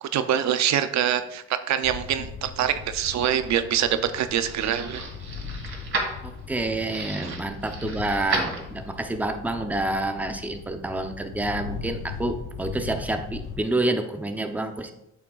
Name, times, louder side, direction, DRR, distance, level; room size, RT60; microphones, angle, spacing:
voice 1, 0.0-5.0, right 10 dB, 65° right, 10 dB, 0.5 m, -25 dB
sound 1, 1.8-13.6, left 5 dB, 80° left, 1.1 m, -39 dB
sound 2, 3.4-9.1, right 3 dB, 45° right, 2.1 m, -34 dB
voice 2, 6.2-14.9, right 2 dB, 5° right, 6 dB, 0.7 m, -28 dB
8.4 x 7.1 x 2.4 m, 0.88 s
cardioid pair, 90°, 30 cm